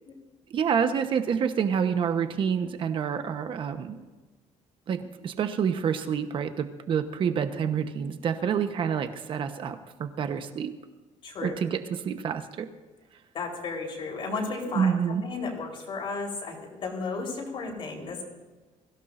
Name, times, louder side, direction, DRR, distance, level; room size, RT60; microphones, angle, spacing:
voice 1, 0.5-4.1 4.9-10.7 11.4-12.7 14.7-15.2, right 7 dB, 45° right, 8 dB, 1.1 m, -28 dB
voice 2, 11.2-11.6 13.3-18.2, left 4 dB, 45° left, -1 dB, 4.3 m, -34 dB
23.0 x 16.5 x 2.7 m, 1.2 s
cardioid pair, 170°, 12 cm